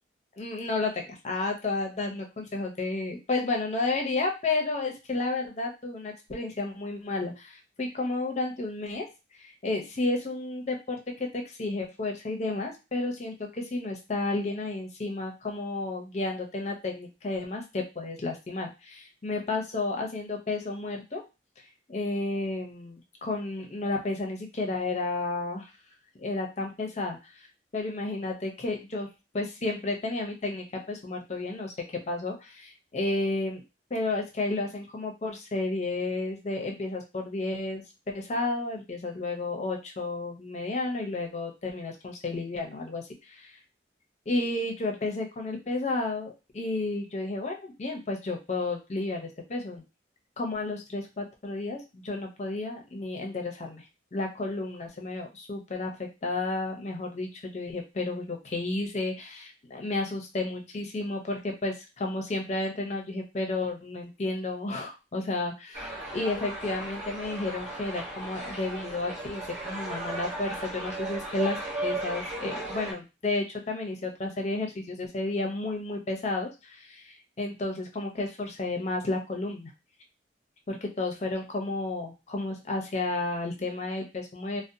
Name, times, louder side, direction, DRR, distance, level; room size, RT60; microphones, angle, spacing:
voice 1, 0.4-21.2 21.6-25.7 26.2-27.5 27.7-29.1 29.3-33.6 33.9-43.0 44.3-49.8 50.4-53.8 54.1-79.7 80.7-84.6, left 2 dB, 40° left, 2 dB, 0.6 m, -32 dB
sound 1, 65.7-72.9, right 1 dB, 40° right, 1.0 m, -36 dB
2.7 x 2.0 x 2.6 m, 0.27 s
head